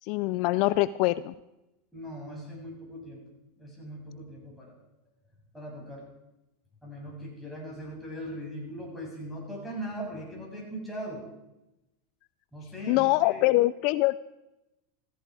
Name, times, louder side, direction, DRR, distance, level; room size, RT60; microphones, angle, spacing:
voice 1, 0.0-1.3 12.9-14.2, left 19 dB, 60° left, 17 dB, 0.4 m, -24 dB
voice 2, 1.9-3.2 3.6-4.7 5.5-6.1 6.8-11.2 12.5-13.5, equal, ahead, -4 dB, 7.3 m, -40 dB
15.5 x 15.0 x 4.8 m, 0.94 s
supercardioid pair, 120°, 0 cm